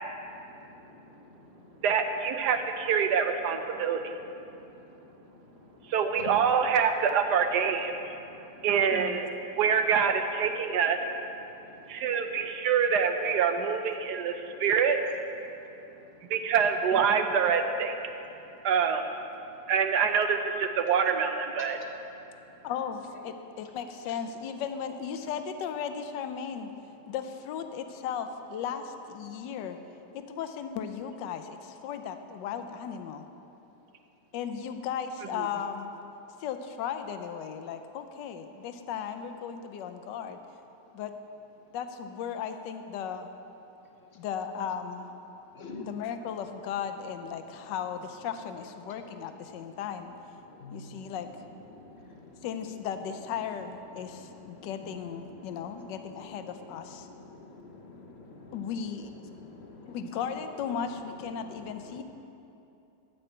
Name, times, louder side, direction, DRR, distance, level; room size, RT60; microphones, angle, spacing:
voice 1, 0.0-2.0 2.4-3.0 3.3-6.8 7.7-8.1 9.0-9.9 10.5-12.8 14.0-14.7 15.4-16.4 18.0-18.7 19.5-19.7 21.6-22.7 23.1-23.3 33.7-33.8 36.3-36.4 40.8-40.9 43.8-44.3 45.3-46.4 46.6-46.7 47.3-47.7 48.8-53.0 53.4-62.0, left 3 dB, 45° left, 2 dB, 1.0 m, -50 dB
voice 2, 1.8-4.0 5.9-8.0 8.6-9.3 9.6-11.0 11.9-15.0 16.3-17.9 18.6-19.0 19.7-21.8 35.4-35.5, right 6 dB, 70° right, 7 dB, 1.2 m, -25 dB
voice 3, 22.6-26.7 27.1-29.8 30.1-33.3 34.3-35.9 36.4-40.4 40.9-41.1 41.7-43.3 44.2-45.1 45.8-50.1 50.7-51.4 52.4-57.1 58.5-59.1 59.9-62.0, left 7 dB, 80° left, 8 dB, 1.3 m, -36 dB
13.0 x 5.6 x 7.8 m, 2.9 s
omnidirectional pair, 1.9 m